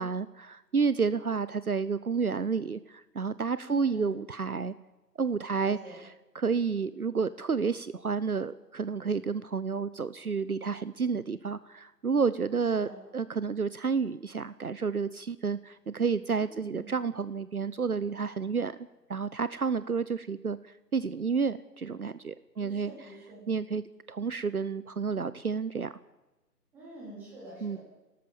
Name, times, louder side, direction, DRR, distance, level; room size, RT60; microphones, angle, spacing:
voice 1, 0.0-4.7 5.2-6.1 6.3-18.8 19.1-22.9 23.5-23.8 24.1-25.9 27.6-27.8, right 5 dB, 60° right, 15 dB, 0.9 m, -30 dB
voice 2, 3.6-4.2 5.5-6.0 12.7-13.0 16.4-16.9 22.6-23.4 26.7-27.8, right 1 dB, 5° right, -6 dB, 3.8 m, -46 dB
28.0 x 13.5 x 7.3 m, 1.1 s
figure-of-eight pair, 165°, 49 cm